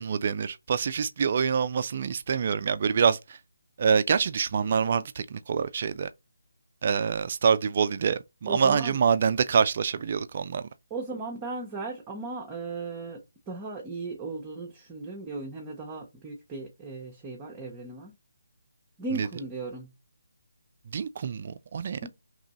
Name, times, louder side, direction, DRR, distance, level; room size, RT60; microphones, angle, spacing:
voice 1, 0.0-3.4 3.8-6.1 6.8-10.7 19.1-19.3 20.9-22.0, right 6 dB, 45° right, 0.3 m, -26 dB
voice 2, 8.5-9.0 10.9-13.2 13.5-18.1 19.0-19.9 22.0-22.1, right 3 dB, 15° right, 0.8 m, -37 dB
3.0 x 2.5 x 4.1 m
figure-of-eight pair, 155°, 0 cm